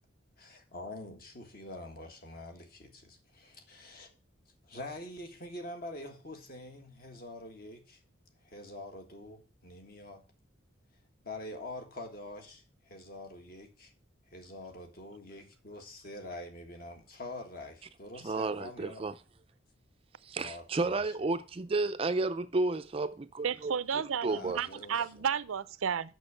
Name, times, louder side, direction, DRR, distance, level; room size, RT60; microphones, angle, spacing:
voice 1, 0.4-4.1 4.7-8.0 8.4-10.2 11.2-13.9 14.3-19.0 20.4-21.3 24.2-25.3, left 1 dB, 45° left, 1.6 m, -45 dB
voice 2, 18.2-19.1 20.2-23.7 24.2-24.6, right 3 dB, 30° right, 0.4 m, -32 dB
voice 3, 23.4-26.1, right 7 dB, 90° right, 0.5 m, -32 dB
6.4 x 6.1 x 6.7 m
head